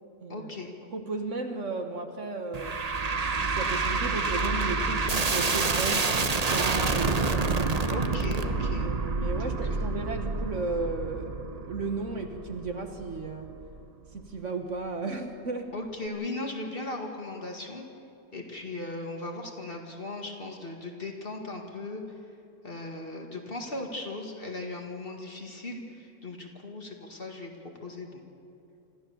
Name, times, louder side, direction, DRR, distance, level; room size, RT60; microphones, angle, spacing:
voice 1, 0.3-0.8 7.9-8.9 9.4-9.8 15.7-17.9 18.3-22.0 22.6-27.5 27.8-28.2, left 2 dB, 35° left, 2 dB, 2.1 m, -37 dB
voice 2, 0.9-2.8 3.5-7.7 8.8-13.5 14.1-15.7, right 3 dB, 50° right, 5 dB, 1.5 m, -34 dB
sound 1, 2.5-13.8, right 4 dB, 30° right, 0.8 m, -28 dB
26.5 x 14.0 x 7.0 m, 2.6 s
omnidirectional pair, 1.7 m